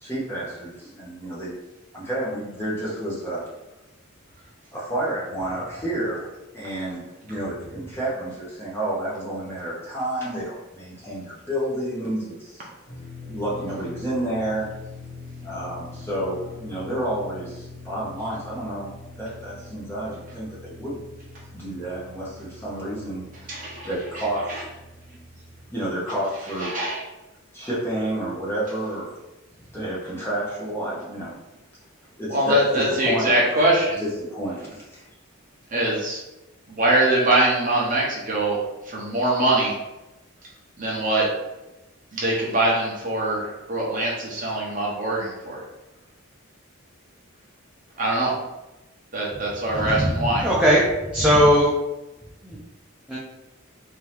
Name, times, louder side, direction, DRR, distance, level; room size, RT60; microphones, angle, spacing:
voice 1, 0.0-1.6 1.9-3.5 4.7-12.7 13.3-14.7 15.4-18.9 19.2-21.0 21.5-23.3 23.9-24.6 25.7-26.7 27.5-29.1 29.7-31.4 32.2-33.5 34.0-35.0, right 1 dB, 10° left, -7 dB, 1.1 m, -30 dB
sound 1, 12.9-25.6, left 3 dB, 40° left, 1.0 m, -43 dB
voice 2, 23.5-23.9 26.6-27.0 32.3-34.0 35.7-36.2 36.7-38.6 38.9-39.8 40.8-41.2 42.1-45.6 48.0-48.3 49.1-50.5, right 1 dB, 40° right, -4 dB, 0.9 m, -22 dB
voice 3, 49.7-50.8 51.1-51.7 52.4-52.6 53.1-53.2, equal, 5° right, -7 dB, 0.5 m, -19 dB
3.5 x 3.0 x 3.5 m, 0.99 s
head